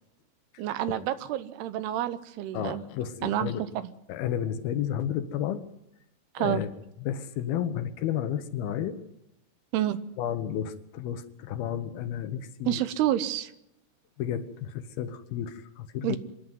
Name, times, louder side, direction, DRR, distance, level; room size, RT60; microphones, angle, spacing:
voice 1, 0.6-2.8 3.2-3.8 6.3-6.6 9.7-10.0 12.7-13.5 16.0-16.2, right 12 dB, 80° right, 14 dB, 2.9 m, -29 dB
voice 2, 2.5-3.6 4.1-5.6 6.4-6.7 7.0-9.0 10.2-12.8 14.2-16.2, left 10 dB, 75° left, 10 dB, 2.8 m, -32 dB
26.0 x 11.0 x 9.2 m, 0.82 s
omnidirectional pair, 4.6 m